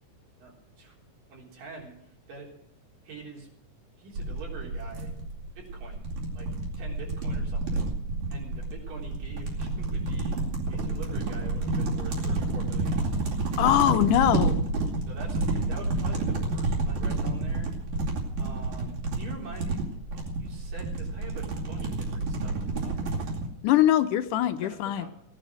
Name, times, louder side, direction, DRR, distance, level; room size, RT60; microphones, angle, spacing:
voice 1, 0.4-0.9 1.3-2.5 3.0-3.5 4.0-5.1 5.6-6.1 6.4-6.5 6.8-7.9 8.3-10.4 10.7-13.7 15.1-17.7 18.4-23.1 24.6-25.1, right 4 dB, 85° right, -1 dB, 5.5 m, -45 dB
sound 1, 4.2-23.5, right 2 dB, 60° right, 3.8 m, -30 dB
voice 2, 13.6-14.6 23.6-25.1, left 12 dB, 80° left, 10 dB, 2.3 m, -22 dB
17.5 x 10.0 x 6.3 m, 0.72 s
omnidirectional pair, 3.8 m